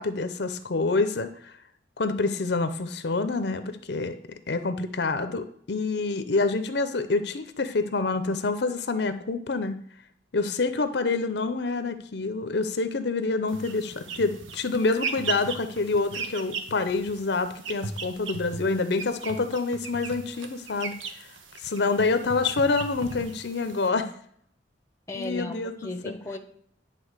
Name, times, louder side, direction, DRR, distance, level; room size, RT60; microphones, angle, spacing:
voice 1, 0.0-1.5 2.0-4.2 4.5-9.7 10.3-20.9 21.6-24.1 25.1-25.7, left 3 dB, 60° left, 0.6 m, -27 dB
sound 1, 13.5-23.9, right 5 dB, 85° right, 1.0 m, -37 dB
voice 2, 25.1-26.4, left 2 dB, 15° left, 0.8 m, -35 dB
10.0 x 3.8 x 6.5 m
head